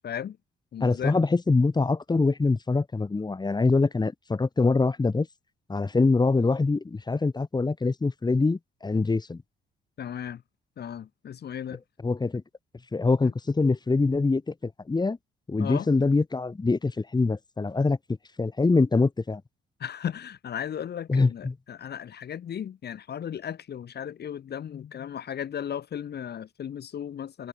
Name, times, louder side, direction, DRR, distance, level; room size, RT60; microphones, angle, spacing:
voice 1, 0.0-0.4 0.7-1.2 10.0-10.4 10.8-11.8 13.2-13.3 15.6-15.9 19.8-27.5, left 9 dB, 55° left, 1.7 m, -35 dB
voice 2, 0.8-5.3 5.7-9.4 12.0-12.4 12.9-15.2 15.5-18.0 18.4-19.4 21.1-21.5, left 3 dB, 20° left, 1.6 m, -24 dB
cardioid pair, 90°, 20 cm